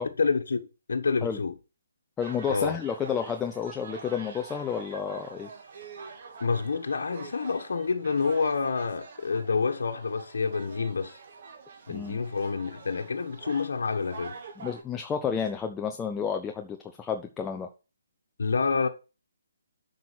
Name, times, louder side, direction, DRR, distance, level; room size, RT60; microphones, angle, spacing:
voice 1, 0.2-1.5 2.5-2.8 6.4-11.2 11.9-14.4 18.4-18.9, left 5 dB, 70° left, 1.4 m, -28 dB
voice 2, 2.2-5.5 11.9-12.2 14.6-17.7, left 7 dB, 10° left, 0.8 m, -31 dB
sound 1, 2.2-14.8, right 4 dB, 45° right, 2.8 m, -45 dB
8.2 x 6.3 x 6.3 m
hypercardioid pair, 150°, 0 cm